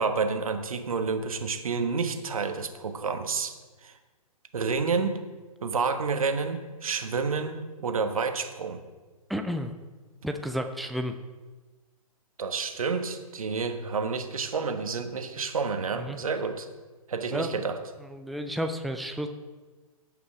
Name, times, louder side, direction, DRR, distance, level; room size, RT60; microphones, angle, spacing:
voice 1, 0.0-3.5 3.8-3.9 4.5-5.2 5.6-8.8 12.4-16.7 17.1-17.8, right 4 dB, 65° right, 7 dB, 1.3 m, -29 dB
voice 2, 9.3-9.7 10.2-11.1 16.0-16.2 17.3-17.5 18.1-19.3, equal, ahead, 5 dB, 0.4 m, -31 dB
16.0 x 5.8 x 4.8 m, 1.3 s
figure-of-eight pair, 120°, 19 cm